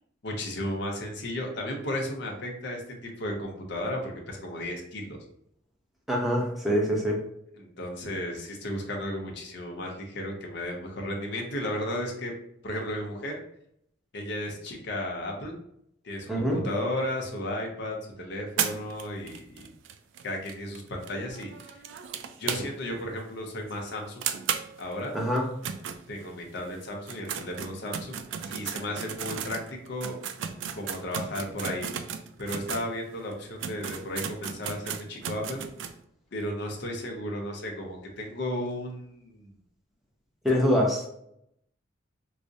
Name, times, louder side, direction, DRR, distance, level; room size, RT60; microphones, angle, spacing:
voice 1, 0.2-5.2 7.5-12.3 12.6-13.4 14.1-15.6 16.0-19.7 20.2-21.8 22.4-24.3 24.8-25.1 26.1-30.2 30.7-35.6 36.3-39.6, left 1 dB, 60° left, 1 dB, 0.7 m, -34 dB
voice 2, 6.1-7.2 16.3-16.6 25.1-25.4 40.4-41.1, equal, ahead, -3 dB, 0.7 m, -24 dB
sound 1, 18.6-23.0 23.3-23.4 23.7-23.8 24.2-26.5 26.9-32.9 33.3-33.4 33.6-36.0, right 8 dB, 65° right, 0.3 m, -35 dB
4.7 x 2.0 x 2.6 m, 0.73 s
head